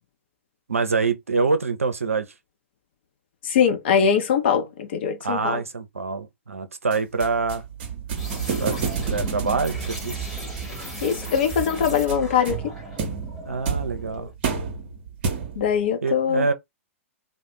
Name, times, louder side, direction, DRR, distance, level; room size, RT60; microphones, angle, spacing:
voice 1, 0.7-2.3 5.2-7.6 8.6-10.3 13.5-14.3 16.0-16.5, right 4 dB, 75° right, 0.5 m, -25 dB
voice 2, 3.4-5.6 11.0-12.7 15.6-16.5, left 7 dB, 50° left, 0.7 m, -22 dB
sound 1, 6.9-15.8, right 6 dB, 45° right, 0.7 m, -31 dB
sound 2, 8.2-14.3, right 1 dB, ahead, 1.0 m, -36 dB
2.4 x 2.1 x 3.0 m
figure-of-eight pair, 110°, 7 cm